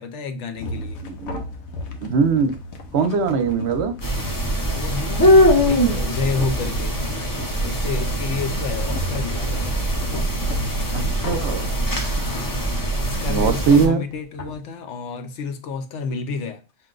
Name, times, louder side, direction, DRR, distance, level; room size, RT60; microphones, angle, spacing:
voice 1, 0.0-1.0 4.7-9.8 12.2-16.6, left 4 dB, 65° left, 0.9 m, -30 dB
sound 1, 0.6-14.6, left 1 dB, 90° left, 1.2 m, -35 dB
voice 2, 1.0-1.4 2.0-2.5 2.9-3.9 10.9-11.7 13.3-14.0, right 5 dB, 60° right, 0.9 m, -20 dB
sound 2, 4.0-13.9, equal, 25° left, 0.4 m, -22 dB
6.4 x 2.2 x 3.7 m
omnidirectional pair, 1.4 m